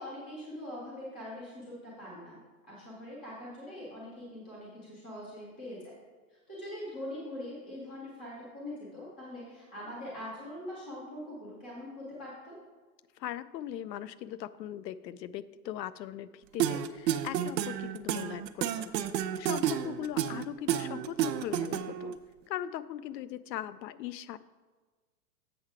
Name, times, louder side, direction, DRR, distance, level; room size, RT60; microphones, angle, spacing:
voice 1, 0.0-2.4 2.7-5.8 6.5-12.6, left 1 dB, 5° left, -8 dB, 0.3 m, -42 dB
voice 2, 13.2-18.9 19.4-22.1 22.5-24.4, left 11 dB, 90° left, 15 dB, 0.6 m, -40 dB
sound 1, 16.6-22.1, right 10 dB, 80° right, 0.7 m, -30 dB
7.9 x 5.6 x 4.8 m, 1.4 s
hypercardioid pair, 150°, 49 cm